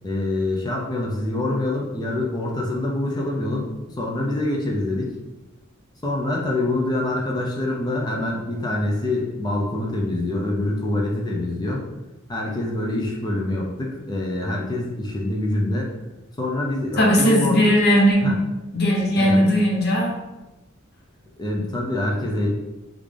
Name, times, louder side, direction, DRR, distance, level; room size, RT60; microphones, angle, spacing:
voice 1, 0.0-5.2 6.0-11.8 12.3-15.9 16.4-17.6 18.2-18.4 19.2-19.5 21.4-22.5, left 1 dB, 20° left, -2 dB, 0.4 m, -25 dB
voice 2, 17.0-18.3 18.7-20.1, equal, 55° left, -3 dB, 0.9 m, -18 dB
3.6 x 2.4 x 3.2 m, 1.1 s
head